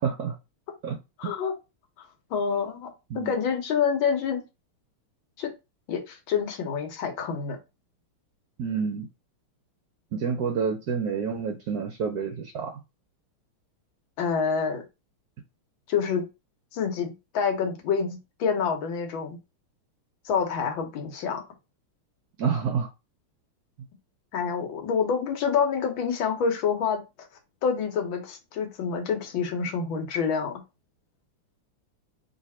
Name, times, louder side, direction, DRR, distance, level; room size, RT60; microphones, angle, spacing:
voice 1, 0.0-0.3 0.8-1.0 1.2-1.3 3.1-3.4 8.6-9.1 10.1-12.7 22.4-22.9, right 6 dB, 65° right, 3 dB, 1.0 m, -28 dB
voice 2, 1.2-1.5 2.3-4.4 5.4-5.5 5.9-7.6 14.2-14.8 15.9-16.3 16.7-19.4 20.3-21.4 24.3-27.0 27.6-30.5, left 6 dB, 65° left, 3 dB, 1.8 m, -27 dB
3.3 x 3.3 x 4.2 m, 0.25 s
omnidirectional pair, 2.4 m